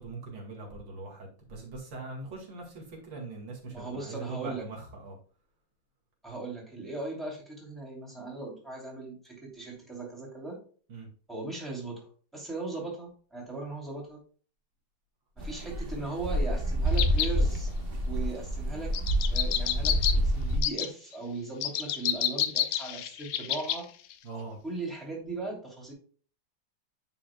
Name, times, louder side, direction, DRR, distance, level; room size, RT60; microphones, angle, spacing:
voice 1, 0.0-5.2 10.9-11.1 24.2-24.6, right 3 dB, 75° right, -1 dB, 2.7 m, -42 dB
voice 2, 3.7-4.6 6.2-10.6 11.3-14.2 15.4-17.7 18.1-18.9 19.3-23.9 24.6-25.9, right 3 dB, ahead, -3 dB, 2.8 m, -38 dB
sound 1, 15.4-20.6, equal, 35° right, 1.1 m, -28 dB
sound 2, 17.0-17.3 18.9-20.1 20.6-20.9 21.6-23.8 24.1-24.2, left 10 dB, 75° left, 1.3 m, -29 dB
9.8 x 5.6 x 2.2 m, 0.41 s
omnidirectional pair, 2.0 m